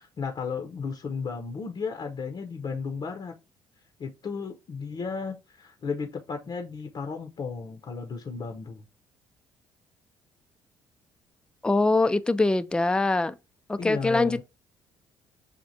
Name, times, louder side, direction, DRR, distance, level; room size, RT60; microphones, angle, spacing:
voice 1, 0.0-3.3 4.0-8.8 13.8-14.4, left 5 dB, 40° left, 0.7 m, -34 dB
voice 2, 11.6-13.3 13.7-14.4, left 2 dB, 10° left, 0.3 m, -23 dB
6.4 x 2.4 x 2.7 m
hypercardioid pair, 50°, 11 cm